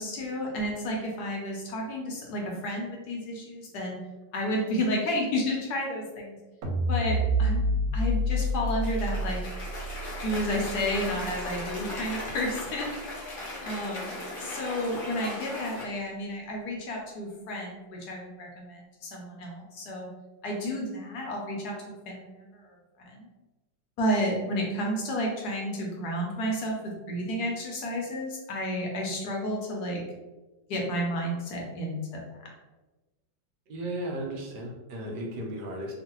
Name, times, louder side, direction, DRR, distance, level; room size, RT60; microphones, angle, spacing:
voice 1, 0.0-4.0 4.3-6.4 6.9-7.6 7.9-9.4 10.2-13.0 13.6-20.1 20.4-23.3 24.0-26.8 27.1-30.0 30.7-32.5, equal, 70° left, -1 dB, 1.0 m, -31 dB
sound 1, 6.6-12.9, equal, 90° right, 1.3 m, -29 dB
Cheering / Applause, 8.6-15.8, left 2 dB, 45° left, 0.6 m, -38 dB
voice 2, 33.7-35.9, right 1 dB, 75° right, 0 dB, 1.2 m, -35 dB
3.0 x 2.5 x 2.9 m, 1.2 s
omnidirectional pair, 2.0 m